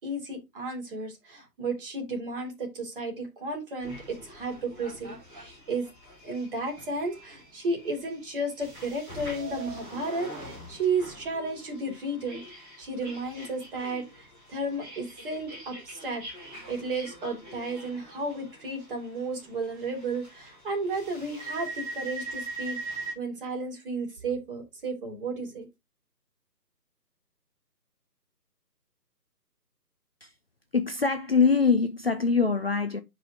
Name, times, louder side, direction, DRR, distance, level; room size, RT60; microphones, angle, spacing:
voice 1, 0.0-5.9 6.2-16.2 16.7-25.7, right 2 dB, 35° right, 3.6 m, -33 dB
sound 1, 3.8-23.1, right 2 dB, 10° right, 2.5 m, -43 dB
voice 2, 30.7-33.0, left 5 dB, 40° left, 0.7 m, -23 dB
9.9 x 5.0 x 3.7 m
figure-of-eight pair, 155°, 49 cm